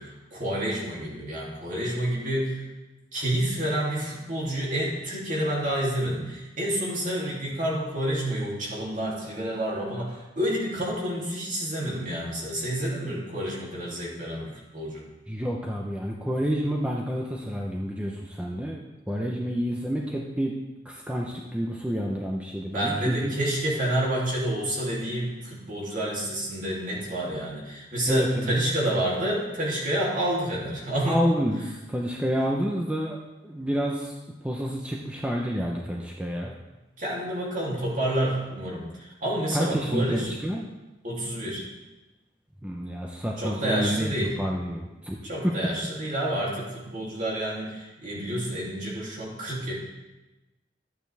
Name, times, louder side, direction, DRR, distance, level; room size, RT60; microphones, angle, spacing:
voice 1, 0.0-2.6 3.1-15.0 22.7-31.2 37.0-40.3 41.0-41.6 43.4-44.3 45.2-49.7, right 1 dB, 50° right, -4 dB, 3.0 m, -29 dB
voice 2, 15.3-18.8 19.1-20.5 20.8-23.3 28.1-28.5 31.1-33.2 33.4-34.1 34.4-36.6 39.5-40.7 42.6-44.1 44.4-45.2, equal, 5° right, -2 dB, 0.8 m, -29 dB
13.5 x 8.8 x 3.5 m, 1.1 s
head